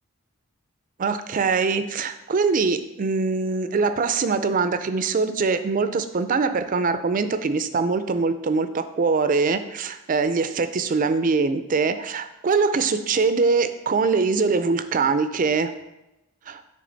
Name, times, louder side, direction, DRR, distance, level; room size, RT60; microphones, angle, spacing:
voice 1, 1.0-15.7 16.5-16.6, right 4 dB, 40° right, 11 dB, 0.4 m, -23 dB
10.0 x 3.5 x 3.9 m, 0.94 s
head